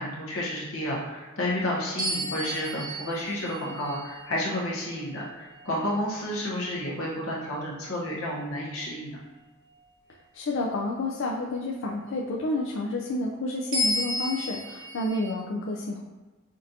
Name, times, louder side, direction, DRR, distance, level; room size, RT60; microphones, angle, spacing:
voice 1, 0.0-9.2, left 1 dB, 80° left, -4 dB, 1.2 m, -31 dB
sound 1, 2.0-6.7 7.3-7.5 13.7-15.3, left 1 dB, 65° right, 1.2 m, -33 dB
voice 2, 10.3-16.0, left 2 dB, 60° left, -2 dB, 0.4 m, -30 dB
5.2 x 2.6 x 2.7 m, 1.2 s
head